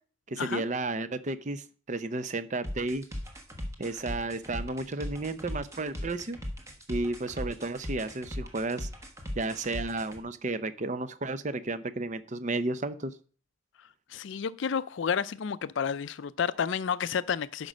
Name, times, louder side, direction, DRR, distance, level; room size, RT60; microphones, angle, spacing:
voice 1, 0.3-3.0 3.8-6.4 6.9-8.9 9.4-13.1, right 2 dB, 35° right, 0.6 m, -32 dB
sound 1, 2.6-10.2, equal, 15° right, 1.3 m, -38 dB
voice 2, 14.1-17.7, left 7 dB, 65° left, 0.4 m, -30 dB
10.5 x 5.3 x 6.2 m
head